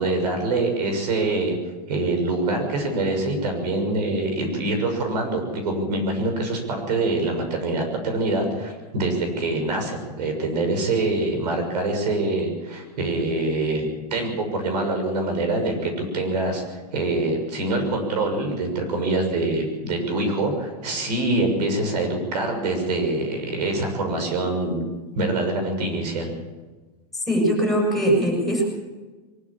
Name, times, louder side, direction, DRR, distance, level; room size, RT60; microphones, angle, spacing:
voice 1, 0.0-1.6 1.9-24.8 25.1-26.3, right 2 dB, 85° right, 4 dB, 6.4 m, -25 dB
voice 2, 27.1-28.6, right 1 dB, ahead, -1 dB, 7.3 m, -21 dB
22.5 x 13.0 x 8.9 m, 1.3 s
supercardioid pair, 150°, 20 cm